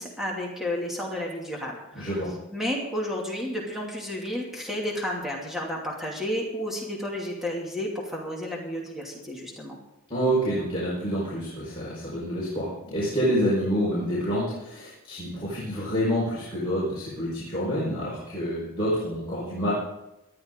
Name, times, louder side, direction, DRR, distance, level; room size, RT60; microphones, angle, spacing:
voice 1, 0.0-2.2 2.5-9.8, left 1 dB, ahead, -2 dB, 2.6 m, -32 dB
voice 2, 1.9-2.3 10.1-19.7, equal, 25° left, -8 dB, 5.2 m, -27 dB
19.0 x 12.5 x 3.9 m, 0.94 s
head